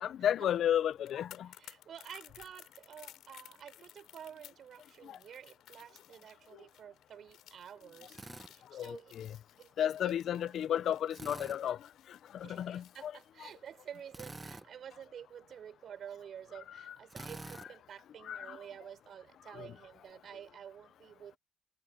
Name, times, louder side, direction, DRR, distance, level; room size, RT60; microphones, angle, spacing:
voice 1, 0.0-1.5 5.1-5.2 8.7-9.3 9.8-11.8 12.3-13.1 18.3-18.6 19.6-19.7, left 10 dB, 70° left, 0.9 m, -33 dB
sound 1, 0.9-14.1 14.4-14.6, left 13 dB, 85° left, 3.9 m, -57 dB
voice 2, 1.4-8.2 8.4-9.1 9.6-10.6 12.4-21.4, right 9 dB, 60° right, 5.9 m, -50 dB
Drill, 8.1-8.5 11.1-11.6 14.1-14.7 17.1-17.7, right 2 dB, 20° right, 1.3 m, -46 dB
cardioid pair, 90°, 0 cm